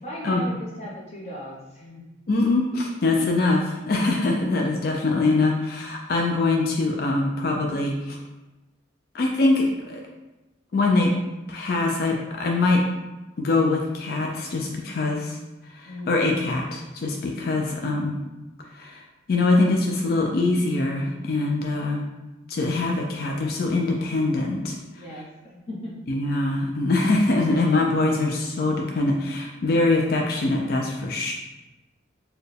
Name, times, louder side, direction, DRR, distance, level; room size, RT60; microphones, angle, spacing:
voice 1, 0.0-2.0 15.8-16.2 24.9-25.9, equal, 35° left, -5 dB, 1.0 m, -37 dB
voice 2, 2.3-8.2 9.1-10.0 10.7-11.1 11.5-12.8 13.4-15.4 15.7-18.2 18.7-19.0 19.3-22.1 22.5-25.0 26.1-31.3, left 2 dB, 55° left, 0 dB, 0.4 m, -23 dB
4.3 x 2.2 x 3.2 m, 1.0 s
head